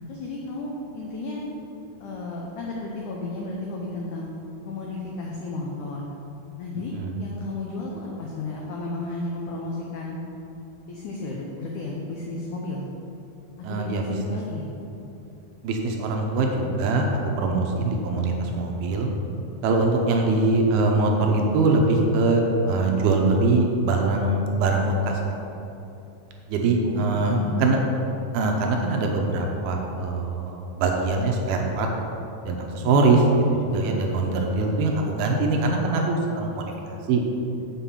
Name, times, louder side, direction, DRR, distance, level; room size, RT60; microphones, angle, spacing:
voice 1, 0.1-1.5 2.0-4.3 4.7-6.0 6.6-6.9 7.2-10.2 10.9-12.9 13.7-14.7 26.8-27.7 32.8-33.3, left 2 dB, 85° left, -2 dB, 1.7 m, -33 dB
voice 2, 13.6-14.0 15.6-17.1 17.4-19.1 19.6-25.1 26.5-27.8 28.3-31.9 32.5-33.2 33.7-36.7 37.1-37.2, right 3 dB, 80° right, 1 dB, 2.7 m, -22 dB
6.9 x 5.8 x 7.0 m, 2.9 s
omnidirectional pair, 4.6 m